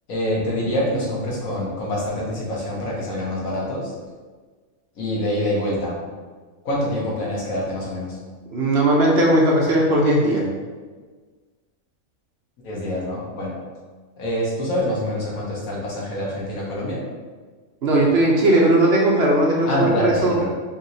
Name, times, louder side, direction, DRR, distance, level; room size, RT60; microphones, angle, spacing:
voice 1, 0.1-3.9 5.0-6.0 6.6-8.2 12.6-13.5 14.2-17.0 19.7-20.5, left 1 dB, 80° left, -5 dB, 1.6 m, -25 dB
voice 2, 8.5-10.4 17.8-20.4, right 1 dB, 55° right, -2 dB, 0.9 m, -18 dB
5.3 x 3.2 x 2.7 m, 1.4 s
omnidirectional pair, 1.4 m